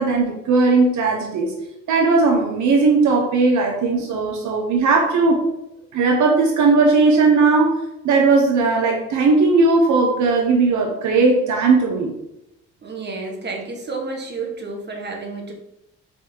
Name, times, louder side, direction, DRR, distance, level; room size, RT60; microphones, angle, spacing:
voice 1, 0.0-1.5 1.9-5.4 5.9-12.1, right 3 dB, 75° right, 1 dB, 1.1 m, -17 dB
voice 2, 12.8-15.5, right 3 dB, 35° right, 1 dB, 1.6 m, -30 dB
4.4 x 4.2 x 5.3 m, 0.84 s
cardioid pair, 90°, 30 cm